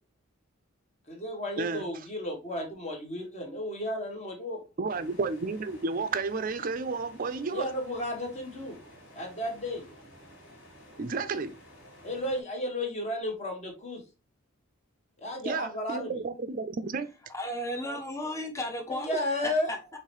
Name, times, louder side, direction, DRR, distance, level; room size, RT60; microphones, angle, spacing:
voice 1, 1.1-4.6 7.5-8.8 9.1-9.8 12.0-14.0 15.2-16.1 18.9-19.7, left 1 dB, 30° left, 1.2 m, -33 dB
voice 2, 4.8-7.6 11.0-11.6 15.4-17.1, right 4 dB, 40° right, 0.4 m, -31 dB
sound 1, 4.9-12.4, equal, 65° left, 2.4 m, -53 dB
voice 3, 17.3-20.0, left 1 dB, 15° left, 0.6 m, -35 dB
4.7 x 3.1 x 3.0 m
head